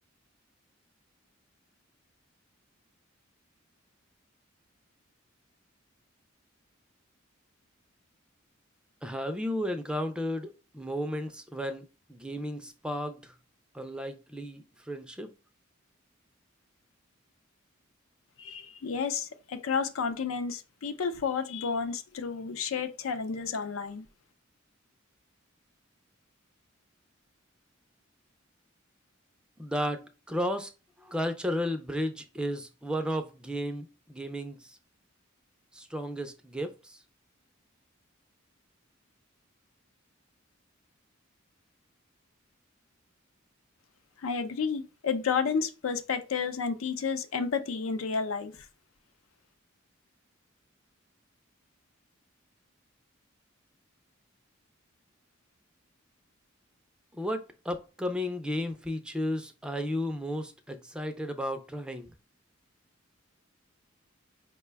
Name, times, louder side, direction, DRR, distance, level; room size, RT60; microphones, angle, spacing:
voice 1, 9.0-13.4 13.7-15.3 29.6-30.7 31.0-34.8 35.7-37.0 57.1-62.1, equal, 5° right, 0.3 m, -34 dB
voice 2, 18.4-24.1 44.2-48.7, left 5 dB, 85° left, 0.5 m, -31 dB
4.9 x 2.2 x 3.3 m
head